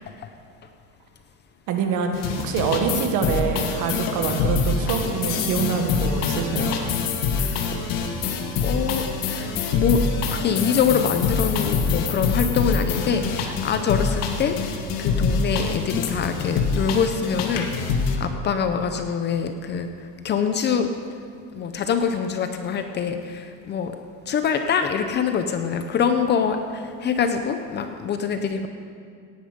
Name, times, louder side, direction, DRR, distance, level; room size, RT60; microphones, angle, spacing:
voice 1, 1.7-6.8, right 6 dB, 50° right, 4 dB, 1.7 m, -25 dB
sound 1, 2.1-18.2, left 5 dB, 60° left, 1.6 m, -25 dB
voice 2, 7.4-7.7 8.6-10.0 10.3-20.9 21.5-23.9 24.3-28.7, left 6 dB, 30° left, 7 dB, 0.6 m, -25 dB
17.5 x 10.0 x 5.2 m, 2.2 s
cardioid pair, 160°, 38 cm